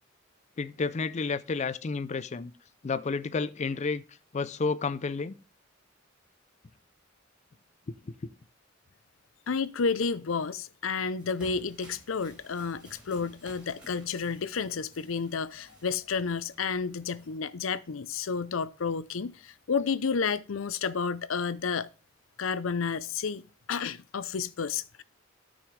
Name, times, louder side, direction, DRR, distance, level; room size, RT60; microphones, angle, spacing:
voice 1, 0.6-2.5 2.8-4.0 4.3-5.3, left 4 dB, 35° left, 0.4 m, -30 dB
voice 2, 9.5-21.9 22.4-25.0, left 5 dB, 80° left, 0.6 m, -31 dB
sound 1, 10.9-17.4, right 1 dB, 5° right, 4.8 m, -55 dB
13.0 x 6.3 x 3.2 m
head